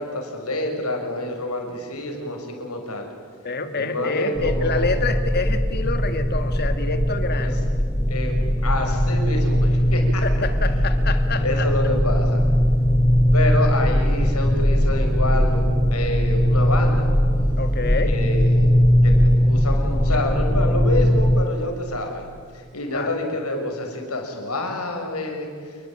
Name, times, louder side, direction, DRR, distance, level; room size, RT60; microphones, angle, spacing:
voice 1, 0.0-3.1 3.7-4.9 7.4-7.5 8.1-8.3 8.6-10.2 11.4-12.4 13.3-17.1 18.1-18.7 19.0-22.2 22.5-25.8, left 2 dB, 85° left, 3 dB, 6.3 m, -28 dB
voice 2, 3.4-7.6 10.2-11.6 17.6-18.2 20.1-20.2 22.9-23.1, left 3 dB, 45° left, 8 dB, 2.2 m, -27 dB
sound 1, 4.4-21.4, equal, 15° left, 1.2 m, -19 dB
28.5 x 22.5 x 8.9 m, 2.1 s
head